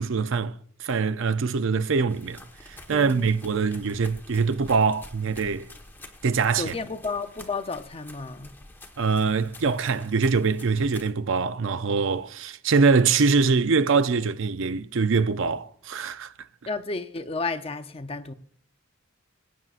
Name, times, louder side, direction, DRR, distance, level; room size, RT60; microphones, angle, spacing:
voice 1, 0.0-5.7 6.2-6.7 9.0-16.3, right 4 dB, 65° right, 0.5 m, -23 dB
sound 1, 2.1-11.1, left 2 dB, 10° left, 1.3 m, -48 dB
voice 2, 2.9-3.3 6.6-8.6 16.7-18.3, left 3 dB, 30° left, 0.6 m, -32 dB
21.5 x 9.2 x 2.5 m
head